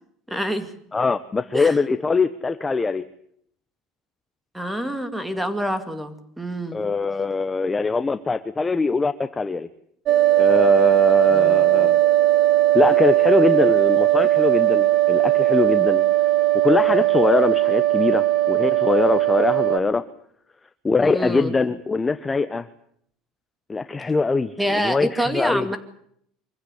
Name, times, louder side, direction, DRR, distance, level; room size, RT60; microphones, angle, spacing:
voice 1, 0.3-0.7 1.5-1.8 4.5-6.8 11.3-11.6 21.0-21.5 24.6-25.8, equal, 5° right, 10 dB, 2.4 m, -26 dB
voice 2, 0.9-3.0 6.7-9.7 10.4-12.0 12.7-16.0 16.5-20.0 20.8-22.7 23.7-25.7, left 4 dB, 15° left, 11 dB, 0.9 m, -22 dB
sound 1, 10.1-19.8, right 15 dB, 50° right, 2.0 m, -18 dB
24.5 x 15.5 x 9.9 m, 0.69 s
cardioid pair, 135°, 0 cm